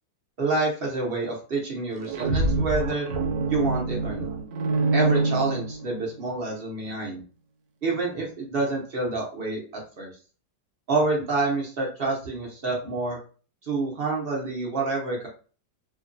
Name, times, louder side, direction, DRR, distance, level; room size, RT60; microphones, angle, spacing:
voice 1, 0.4-3.1 3.5-4.4 4.9-7.2 7.8-10.1 10.9-13.2 13.6-15.3, right 3 dB, 50° right, -2 dB, 0.7 m, -28 dB
sound 1, 1.9-6.2, right 3 dB, 85° right, 1.3 m, -26 dB
2.8 x 2.2 x 2.5 m, 0.37 s
omnidirectional pair, 1.9 m